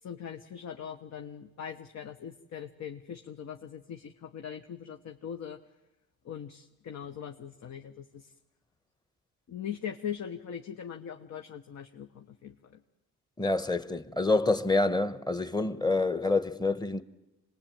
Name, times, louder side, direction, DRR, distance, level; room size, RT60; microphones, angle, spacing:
voice 1, 0.0-5.6 6.2-8.3 9.5-12.8, left 8 dB, 60° left, 1.2 m, -41 dB
voice 2, 13.4-17.0, left 3 dB, 15° left, 1.1 m, -27 dB
26.0 x 20.0 x 8.9 m
cardioid pair, 90°, 30 cm